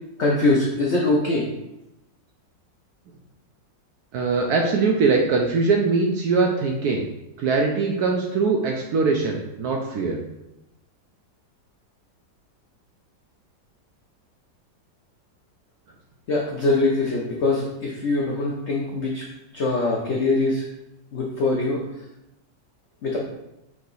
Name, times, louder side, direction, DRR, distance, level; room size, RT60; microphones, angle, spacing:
voice 1, 0.2-1.5 16.3-19.3 19.5-20.6 21.1-21.8 23.0-23.2, left 2 dB, 90° left, -2 dB, 0.6 m, -22 dB
voice 2, 4.1-7.0 7.4-10.2, right 4 dB, 70° right, 1 dB, 0.9 m, -22 dB
4.8 x 2.7 x 3.9 m, 0.90 s
omnidirectional pair, 2.0 m